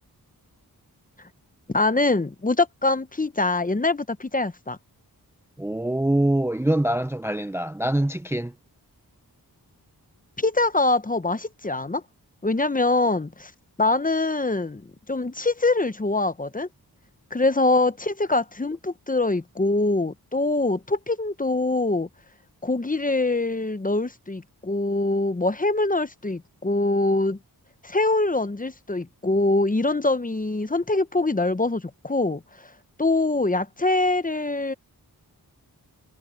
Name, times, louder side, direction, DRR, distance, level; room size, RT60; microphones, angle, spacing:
voice 1, 1.7-4.8 10.4-12.0 12.4-13.5 13.8-14.8 15.1-16.7 17.3-22.1 22.6-27.4 27.8-32.4 33.0-34.7, left 2 dB, 20° left, 0.8 m, -24 dB
voice 2, 5.6-8.5, right 1 dB, 5° right, 0.6 m, -24 dB
wide cardioid pair, 90°, 38 cm